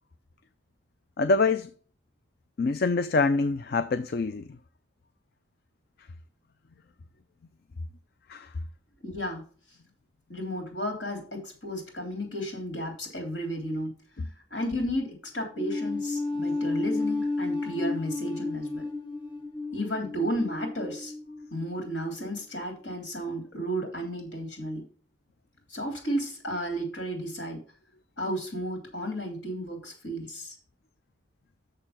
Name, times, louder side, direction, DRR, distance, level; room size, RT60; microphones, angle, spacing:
voice 1, 1.2-1.7 2.6-4.4 8.3-8.5, left 3 dB, 50° left, 0.4 m, -25 dB
voice 2, 9.0-9.4 10.3-13.9 14.5-18.8 19.7-21.1 21.5-24.8 25.7-27.6 28.2-30.5, equal, 65° left, 3.4 m, -33 dB
sound 1, 15.6-22.0, left 3 dB, 25° left, 1.1 m, -32 dB
6.8 x 6.7 x 5.7 m
head